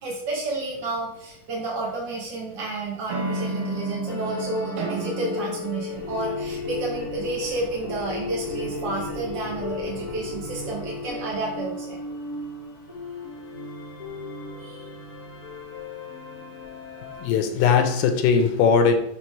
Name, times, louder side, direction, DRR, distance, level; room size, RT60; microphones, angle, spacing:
voice 1, 0.0-12.0 14.6-14.9, right 3 dB, 60° right, -4 dB, 1.1 m, -31 dB
sound 1, 1.6-2.4 3.1-6.7, right 2 dB, 80° right, 2.6 m, -32 dB
sound 2, 4.1-17.3, left 4 dB, 55° left, 0.8 m, -36 dB
sound 3, 5.9-11.7, left 2 dB, 25° right, 1.7 m, -39 dB
voice 2, 17.2-18.9, left 6 dB, 80° left, 6 dB, 2.1 m, -19 dB
7.4 x 3.2 x 4.6 m, 0.77 s
omnidirectional pair, 3.9 m